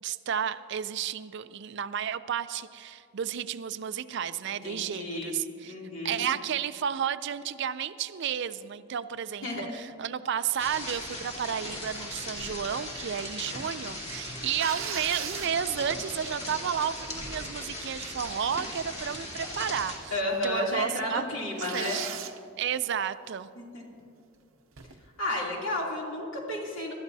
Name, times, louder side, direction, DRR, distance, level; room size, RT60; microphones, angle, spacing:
voice 1, 0.0-5.7 6.0-20.2 20.4-21.2 21.7-22.1 22.6-23.5, right 8 dB, 55° right, 13 dB, 0.4 m, -32 dB
voice 2, 4.6-5.3 5.6-6.2 9.4-9.6 20.1-22.0 23.6-23.8 25.2-26.9, left 1 dB, 70° left, -3 dB, 2.9 m, -32 dB
sound 1, 10.6-20.0, left 1 dB, 30° left, 2.5 m, -38 dB
sound 2, 11.9-12.1 12.7-13.6 14.6-15.9 16.5-16.6 16.9-17.3 17.6-18.5 19.1-19.4 19.7-19.8 20.4-20.5 20.7-20.8 21.6-22.4 24.7-25.1, right 9 dB, 75° right, 0.7 m, -39 dB
24.5 x 13.0 x 2.7 m, 2.6 s
head